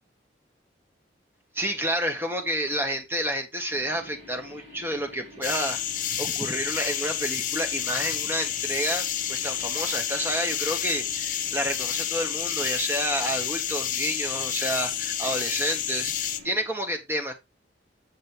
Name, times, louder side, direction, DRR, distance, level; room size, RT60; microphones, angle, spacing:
voice 1, 1.5-5.8 6.1-17.3, equal, 15° right, 1.7 m, -30 dB
sound 1, 3.7-16.6, left 1 dB, 40° right, 4.0 m, -48 dB
sound 2, 5.4-16.4, left 10 dB, 50° left, 1.0 m, -30 dB
8.2 x 5.3 x 3.6 m
head